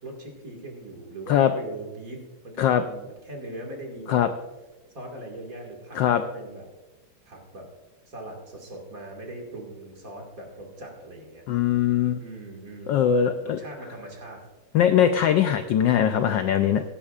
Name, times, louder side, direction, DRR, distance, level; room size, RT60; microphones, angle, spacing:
voice 1, 0.0-4.2 4.9-6.7 7.2-7.7 8.1-11.5 12.2-14.4, right 2 dB, 40° right, 0 dB, 2.3 m, -40 dB
voice 2, 11.5-12.2 12.9-13.6 14.7-16.8, left 9 dB, 75° left, 8 dB, 1.0 m, -21 dB
16.5 x 9.9 x 2.4 m, 1.1 s
omnidirectional pair, 2.4 m